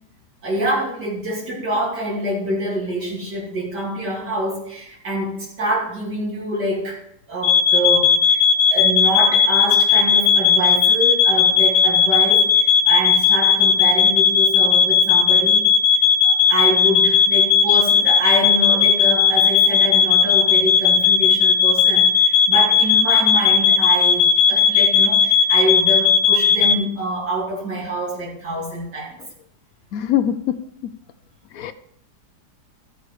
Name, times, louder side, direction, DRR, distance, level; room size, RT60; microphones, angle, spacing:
voice 1, 0.4-7.0 7.3-8.4 8.7-15.7 16.2-29.1, right 1 dB, 75° right, -5 dB, 3.5 m, -25 dB
sound 1, 7.4-26.7, left 7 dB, 45° left, 1.4 m, -16 dB
voice 2, 29.9-30.6 31.5-31.7, left 10 dB, 65° left, 12 dB, 0.9 m, -22 dB
14.0 x 7.0 x 4.9 m, 0.71 s
omnidirectional pair, 1.8 m